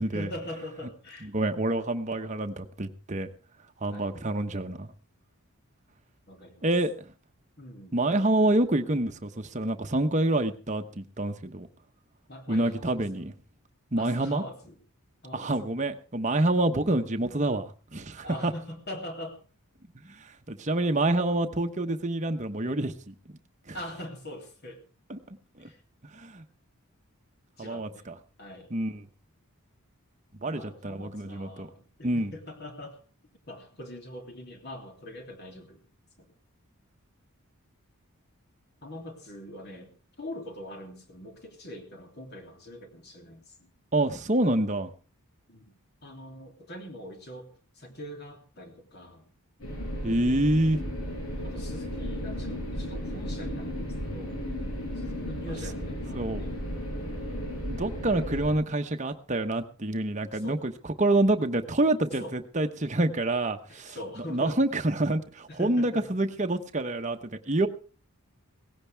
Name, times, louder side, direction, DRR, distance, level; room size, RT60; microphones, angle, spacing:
voice 1, 0.1-1.3 3.9-4.1 6.3-6.7 7.6-8.0 12.3-13.3 14.0-14.8 15.2-15.7 18.2-19.4 23.7-24.8 25.6-25.8 27.6-28.1 28.4-28.7 30.4-33.0 33.5-35.8 36.2-36.3 38.8-39.9 40.2-43.7 45.5-49.2 51.4-54.4 54.9-56.6 60.3-60.6 62.2-62.4 63.7-64.6 65.5-66.1, left 1 dB, 45° left, 3 dB, 3.1 m, -43 dB
voice 2, 1.2-3.3 3.8-4.9 6.6-7.1 7.9-11.7 12.5-13.3 13.9-14.4 15.3-18.5 19.9-23.1 23.7-23.8 25.1-25.2 25.6-25.7 26.1-26.4 27.6-28.1 28.7-29.0 30.4-31.7 32.0-32.3 43.9-44.9 50.0-50.9 56.1-56.4 57.6-64.0 64.3-67.7, right 2 dB, 35° right, 6 dB, 1.0 m, -27 dB
sound 1, 49.6-58.5, equal, 70° left, 7.8 m, -34 dB
17.5 x 16.0 x 3.5 m, 0.36 s
head